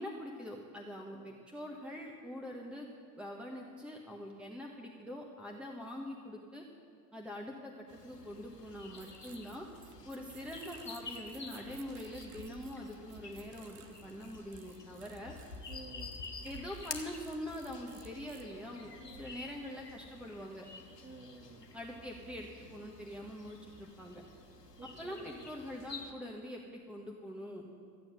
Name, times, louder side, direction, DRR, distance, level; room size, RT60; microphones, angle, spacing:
voice 1, 0.0-6.6 7.1-9.7 10.0-15.3 16.4-20.7 21.7-24.2 24.8-27.6, left 1 dB, ahead, -1 dB, 1.3 m, -44 dB
sound 1, 7.9-26.1, left 3 dB, 90° left, 1.2 m, -50 dB
sound 2, 8.9-18.4, right 9 dB, 65° right, 1.1 m, -59 dB
voice 2, 15.7-16.2 19.0-19.3 21.0-21.7 24.8-25.3, right 3 dB, 25° right, 2 dB, 2.4 m, -52 dB
14.5 x 9.1 x 6.6 m, 2.4 s
figure-of-eight pair, 65°, 47 cm